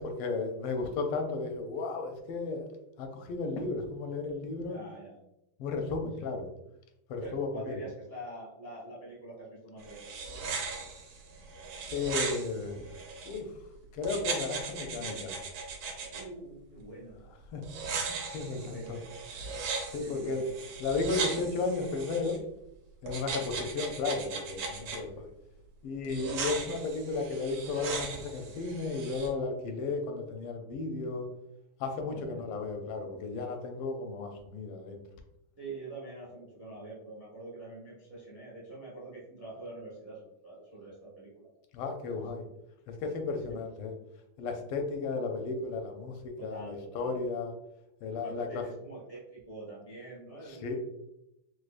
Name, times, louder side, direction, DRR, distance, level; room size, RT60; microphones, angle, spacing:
voice 1, 0.0-2.7 3.0-4.8 5.6-6.5 7.1-7.7 11.9-12.8 13.3-13.5 13.9-15.3 17.5-17.6 18.0-19.0 19.9-20.4 20.8-22.4 23.0-25.3 25.8-31.3 31.8-35.0 41.7-42.5 42.9-43.9 44.4-47.5 48.0-48.6 50.5-50.8, left 4 dB, 85° left, 5 dB, 1.5 m, -34 dB
voice 2, 4.7-5.2 7.2-10.2 16.1-17.2 18.5-19.0 20.0-20.5 23.3-23.7 32.0-32.4 35.6-41.4 42.1-42.2 43.3-43.6 46.4-47.1 48.2-50.8, right 2 dB, 20° right, -5 dB, 0.4 m, -45 dB
sound 1, 9.8-13.4 14.0-16.2 17.6-22.4 23.1-25.0 26.0-29.3, right 4 dB, 90° right, 1.7 m, -38 dB
4.6 x 2.2 x 2.4 m, 0.85 s
omnidirectional pair, 2.4 m